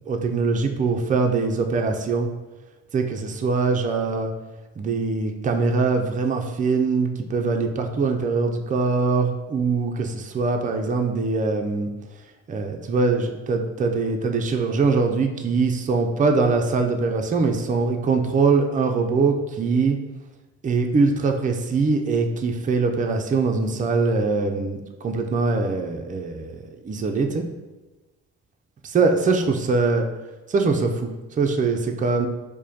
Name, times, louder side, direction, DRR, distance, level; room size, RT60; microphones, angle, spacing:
voice 1, 0.1-2.3 2.9-4.3 4.8-11.9 12.5-20.0 20.6-27.4 28.8-30.1 30.5-31.1 31.4-32.3, right 4 dB, 25° right, 4 dB, 0.4 m, -22 dB
4.8 x 2.1 x 2.8 m, 1.1 s
cardioid pair, 90°, 30 cm